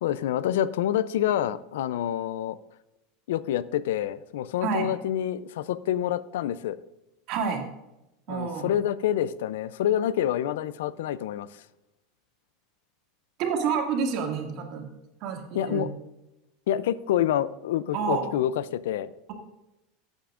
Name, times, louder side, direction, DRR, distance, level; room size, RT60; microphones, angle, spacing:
voice 1, 0.0-2.6 3.3-6.8 8.3-11.5 15.5-15.9 16.7-19.1, left 11 dB, 85° left, 17 dB, 0.4 m, -27 dB
voice 2, 7.3-7.6 8.3-8.7 13.4-14.9 15.2-15.8 17.9-18.3, right 6 dB, 50° right, 1 dB, 2.2 m, -28 dB
14.5 x 8.9 x 2.5 m, 0.95 s
supercardioid pair, 145°, 0 cm